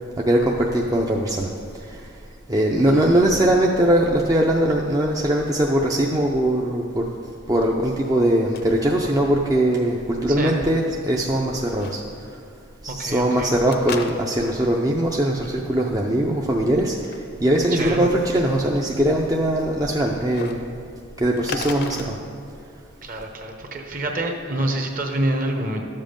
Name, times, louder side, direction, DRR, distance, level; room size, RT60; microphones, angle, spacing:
voice 1, 0.2-2.2 2.5-7.0 7.5-12.4 12.8-20.6 21.2-22.2, right 1 dB, 20° right, -1 dB, 0.5 m, -21 dB
voice 2, 2.9-3.3 10.3-10.6 12.9-13.5 17.7-18.1 23.0-25.8, right 1 dB, 45° right, 3 dB, 1.1 m, -27 dB
sound 1, 8.3-8.6 8.9-9.6 9.8-9.9 11.8-12.0 13.7-14.5 16.8-17.2 17.6-18.0 20.3-20.5 21.4-22.1, left 4 dB, 55° left, 0.6 m, -33 dB
12.5 x 7.5 x 5.2 m, 2.5 s
head